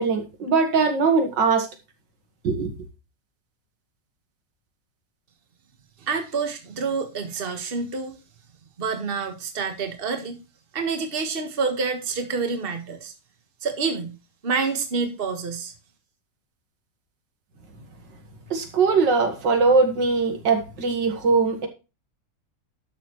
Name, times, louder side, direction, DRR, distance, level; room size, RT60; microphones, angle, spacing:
voice 1, 0.0-1.7 2.4-2.7 18.5-21.7, right 4 dB, 80° right, 6 dB, 2.4 m, -21 dB
voice 2, 6.0-8.2 8.8-10.4 10.7-13.1 13.6-14.1 14.4-15.7, right 4 dB, 35° right, 6 dB, 1.6 m, -28 dB
12.0 x 6.9 x 3.1 m, 0.29 s
omnidirectional pair, 1.9 m